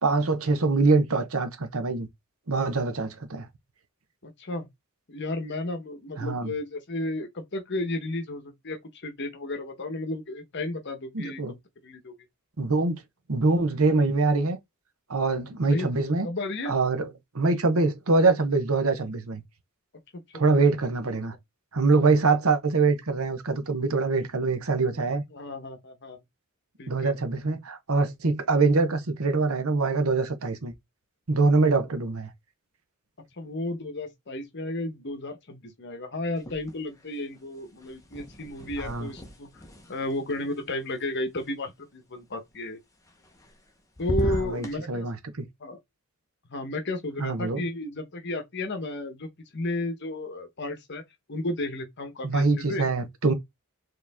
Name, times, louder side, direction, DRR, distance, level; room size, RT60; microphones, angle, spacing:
voice 1, 0.0-2.1 2.5-3.5 6.2-6.5 11.1-11.5 12.6-13.0 13.3-14.6 15.1-16.3 16.7-17.1 17.3-19.4 20.3-21.3 21.7-25.2 26.9-30.7 31.3-32.3 38.8-39.1 44.3-45.2 47.2-47.6 52.2-53.3, right 3 dB, 70° right, 1.0 m, -24 dB
voice 2, 4.2-4.7 5.1-11.4 11.8-12.1 15.6-15.9 16.2-16.7 20.1-20.4 25.3-26.2 26.8-27.2 33.4-39.6 39.9-42.8 44.0-45.1 45.6-45.8 46.5-51.0 51.3-52.8, left 2 dB, 50° left, 1.1 m, -33 dB
sound 1, 36.4-37.1 37.3-41.4 43.1-43.7 44.0-44.8, equal, 15° left, 0.9 m, -36 dB
4.8 x 3.1 x 3.5 m
head